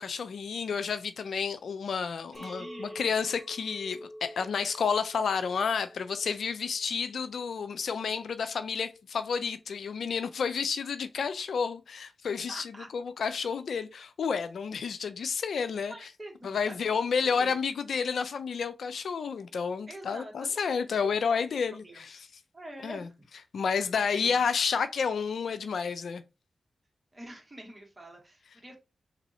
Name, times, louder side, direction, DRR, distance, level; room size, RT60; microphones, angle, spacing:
voice 1, 0.0-16.1 16.4-22.2 22.8-23.1 23.5-26.2, left 6 dB, 75° left, 0.4 m, -30 dB
Chink clink, 2.3-6.7 7.1-7.7, equal, 30° left, 1.1 m, -47 dB
voice 2, 2.3-3.1 12.5-12.9 15.9-17.6 19.9-21.6 21.8-22.0 22.5-23.1 23.9-24.4 27.1-28.8, right 1 dB, 30° right, 2.0 m, -46 dB
3.4 x 2.6 x 4.1 m
supercardioid pair, 40°, 0 cm